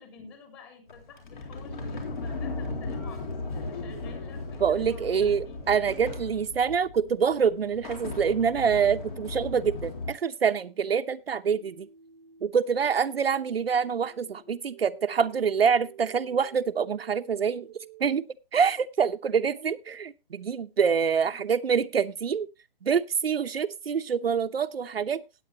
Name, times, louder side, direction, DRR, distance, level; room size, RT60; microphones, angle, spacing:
voice 1, 0.0-5.7 21.2-21.3, left 5 dB, 25° left, 3.4 m, -49 dB
Sliding door, 0.9-10.1, left 3 dB, 55° left, 3.7 m, -37 dB
voice 2, 4.6-11.9 12.4-17.7 18.0-22.5 22.8-25.2, right 6 dB, 90° right, 0.9 m, -26 dB
sound 1, 11.5-18.2, right 8 dB, 15° right, 0.5 m, -52 dB
17.5 x 8.7 x 2.9 m
hypercardioid pair, 160°, 29 cm